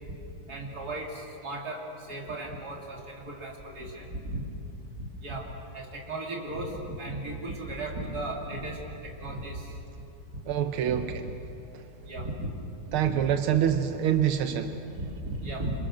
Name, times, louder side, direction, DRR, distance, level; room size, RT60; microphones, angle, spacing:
voice 1, 0.5-4.4 5.0-5.5 5.7-9.7 10.9-11.0 12.1-12.5 13.0-13.3 14.2-14.3 14.9-15.7, right 2 dB, 45° right, -1 dB, 3.8 m, -36 dB
voice 2, 10.5-11.1 12.9-14.7, right 10 dB, 85° right, 7 dB, 1.8 m, -25 dB
27.5 x 27.0 x 6.5 m, 3.0 s
omnidirectional pair, 2.3 m